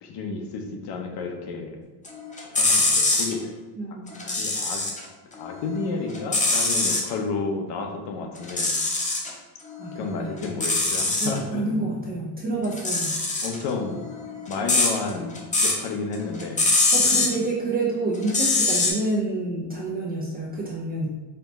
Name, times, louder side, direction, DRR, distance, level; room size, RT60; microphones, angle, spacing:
voice 1, 0.0-1.8 2.5-3.6 4.2-4.8 5.3-8.7 10.0-12.0 13.4-14.0 14.5-16.7 17.0-17.3, left 4 dB, 55° left, 4 dB, 0.8 m, -31 dB
sound 1, 2.0-3.3 4.1-5.0 5.4-7.1 8.4-9.3 9.7-11.4 12.6-15.9 16.1-17.3 18.2-18.9, left 3 dB, 15° left, 0.6 m, -23 dB
voice 2, 3.8-4.3 9.8-10.4 11.2-13.2 16.9-21.1, right 2 dB, 20° right, -3 dB, 0.3 m, -28 dB
4.3 x 2.1 x 4.0 m, 1.2 s
supercardioid pair, 120°, 49 cm